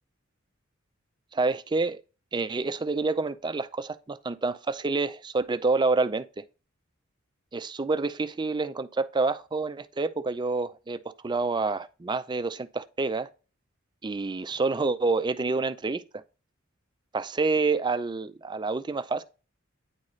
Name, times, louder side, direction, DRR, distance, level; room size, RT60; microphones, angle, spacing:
voice 1, 1.3-2.0 2.3-6.4 7.5-13.3 14.0-16.2 17.1-19.2, right 3 dB, 20° right, 0.4 m, -28 dB
9.7 x 4.0 x 3.1 m
head